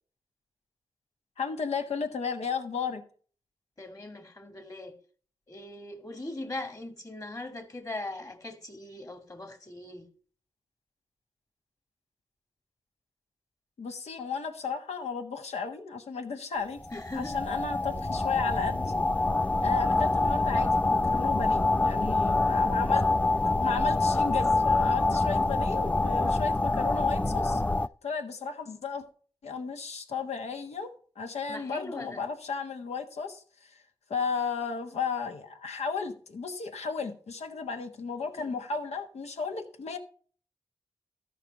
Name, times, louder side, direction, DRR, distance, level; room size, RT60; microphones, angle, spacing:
voice 1, 1.4-3.0 13.8-16.8 17.1-19.0 19.6-23.0 23.6-27.6 28.0-29.1 29.4-33.8 34.1-40.0, left 5 dB, 80° left, 1.5 m, -34 dB
voice 2, 3.8-5.0 5.5-10.1 16.9-17.4 31.5-32.2 38.4-38.5, left 2 dB, 30° left, 2.4 m, -40 dB
sound 1, 16.8-27.9, left 2 dB, 10° left, 0.4 m, -26 dB
13.5 x 5.3 x 5.3 m
cardioid pair, 50°, 11 cm